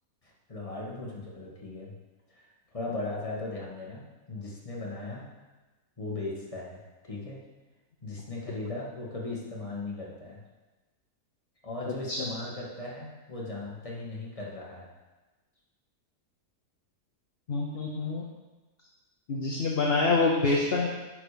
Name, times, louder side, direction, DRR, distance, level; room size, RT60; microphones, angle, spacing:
voice 1, 0.2-1.9 2.3-5.3 6.0-6.8 7.0-7.4 8.0-10.4 11.6-14.9, left 2 dB, 20° left, -4 dB, 1.7 m, -38 dB
voice 2, 11.9-12.3 17.5-18.2 19.3-20.9, left 3 dB, 45° left, -1 dB, 0.9 m, -26 dB
9.8 x 5.0 x 5.1 m, 1.2 s
omnidirectional pair, 1.7 m